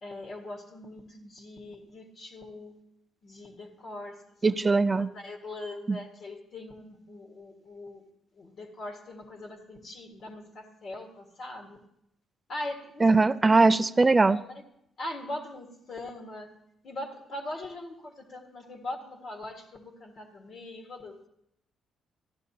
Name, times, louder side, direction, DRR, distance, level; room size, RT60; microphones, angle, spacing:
voice 1, 0.0-2.8 3.2-8.0 8.3-11.8 12.5-13.1 13.9-14.5 15.0-16.6 16.8-21.3, left 1 dB, 55° left, 1.6 m, -41 dB
voice 2, 4.4-5.1 5.9-6.0 13.0-14.4, right 3 dB, 25° right, 0.4 m, -21 dB
14.5 x 11.5 x 2.8 m
cardioid pair, 90°, 0 cm